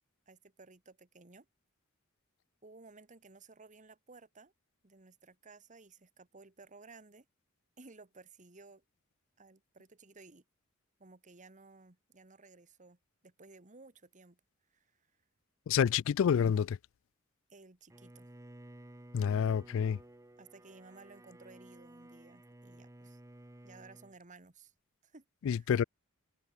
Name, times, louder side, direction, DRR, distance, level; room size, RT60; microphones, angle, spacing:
voice 1, 0.3-1.5 2.6-4.5 4.8-7.3 7.8-8.8 9.4-10.4 11.0-13.0 13.2-14.4 14.7-15.1 17.5-18.3 20.4-23.2 23.6-24.7 25.0-25.7, right 3 dB, 35° right, 1.7 m, -57 dB
voice 2, 15.7-16.8 19.1-20.0 25.4-25.8, left 7 dB, 65° left, 0.3 m, -28 dB
Bowed string instrument, 17.9-24.2, right 1 dB, 15° right, 0.9 m, -54 dB
head